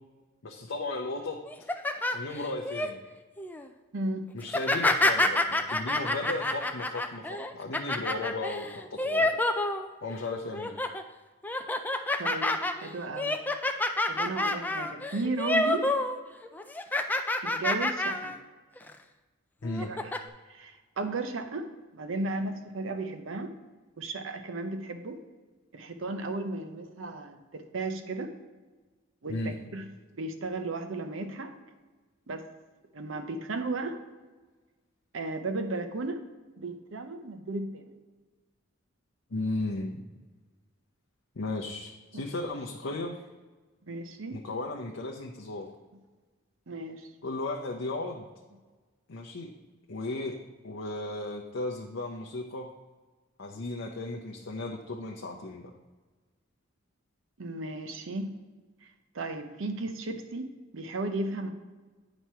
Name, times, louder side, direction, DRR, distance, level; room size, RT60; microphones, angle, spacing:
voice 1, 0.4-1.4 2.1-3.0 4.3-9.3 10.0-10.7 19.6-19.9 29.3-29.5 39.3-40.0 41.4-43.2 44.3-45.7 47.2-48.3 49.1-49.5 49.9-50.4 50.6-52.7 53.4-55.7, left 2 dB, 70° left, 0 dB, 0.6 m, -35 dB
sound 1, 1.5-2.9 3.4-3.7 4.4-10.2 10.5-11.0 11.4-16.2 16.4-18.4 18.8-18.9 19.6-20.2, left 2 dB, 10° left, 0.3 m, -28 dB
voice 2, 3.9-4.3 12.2-13.4 14.1-15.9 17.4-18.3 19.9-20.2 20.5-21.7 21.9-23.5 24.0-25.2 25.7-28.3 29.2-29.9 30.1-31.5 32.3-32.4 32.9-34.0 35.1-36.2 36.6-37.9 42.1-42.2 43.9-44.4 46.7-47.1 57.4-58.4 59.1-61.5, right 2 dB, 70° right, 7 dB, 0.7 m, -35 dB
8.7 x 3.1 x 5.6 m, 1.3 s
head